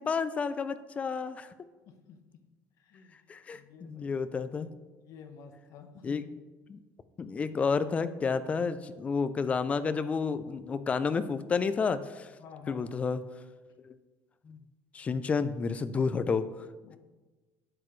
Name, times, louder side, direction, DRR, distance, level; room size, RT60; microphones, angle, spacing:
voice 1, 0.0-1.5 3.3-4.7 6.0-6.2 6.7-6.8 7.2-12.3 12.7-13.2 13.8-13.9 14.5-14.6 14.9-16.7, left 5 dB, 20° left, 12 dB, 0.4 m, -30 dB
voice 2, 1.8-2.2 2.8-3.2 3.5-4.2 5.0-6.2 12.4-13.0 16.8-17.0, left 6 dB, 55° left, 5 dB, 1.1 m, -51 dB
12.0 x 8.1 x 3.2 m, 1.2 s
cardioid pair, 170°, 7 cm